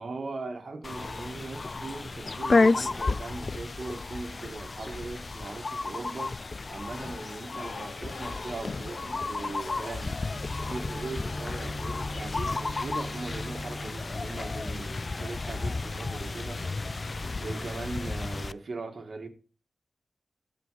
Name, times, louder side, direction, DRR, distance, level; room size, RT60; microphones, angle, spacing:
voice 1, 0.0-6.4 6.7-10.2 10.7-16.6 17.4-19.3, right 3 dB, 65° right, 2.0 m, -39 dB
sound 1, 0.8-18.5, left 3 dB, 55° left, 0.4 m, -32 dB
sound 2, 6.9-13.6, left 4 dB, 80° left, 1.7 m, -47 dB
sound 3, 10.3-18.4, left 1 dB, 10° right, 3.3 m, -41 dB
13.5 x 5.2 x 4.9 m
cardioid pair, 45°, 0 cm